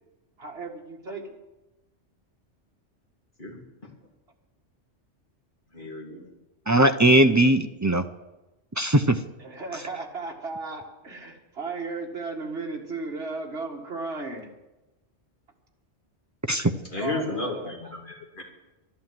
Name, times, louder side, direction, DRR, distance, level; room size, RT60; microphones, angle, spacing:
voice 1, 0.4-1.4 9.4-14.5 17.0-17.9, right 3 dB, 60° right, 1 dB, 2.2 m, -35 dB
voice 2, 5.7-6.3 16.9-18.4, left 2 dB, 45° left, -1 dB, 2.9 m, -33 dB
voice 3, 6.7-8.0 8.8-9.2 16.5-16.7, right 1 dB, 30° right, 8 dB, 0.3 m, -19 dB
12.0 x 11.5 x 7.5 m, 1.0 s
omnidirectional pair, 1.2 m